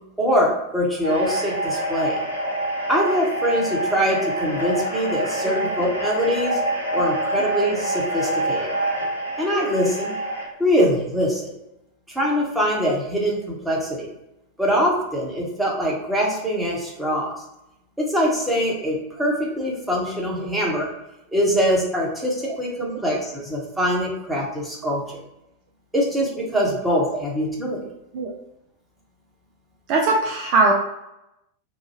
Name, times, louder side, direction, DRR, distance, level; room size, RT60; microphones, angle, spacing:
voice 1, 0.2-2.2 2.9-6.6 6.9-8.7 9.4-10.1 10.6-11.5 12.1-14.1 14.6-17.3 18.0-20.9 21.3-25.2 25.9-27.8, equal, 5° right, -4 dB, 1.0 m, -23 dB
sound 1, 1.0-10.5, right 1 dB, 85° left, 0.8 m, -26 dB
voice 2, 29.9-30.7, right 3 dB, 40° right, 0 dB, 0.4 m, -20 dB
3.0 x 2.2 x 2.8 m, 0.88 s
figure-of-eight pair, 90°, 0 cm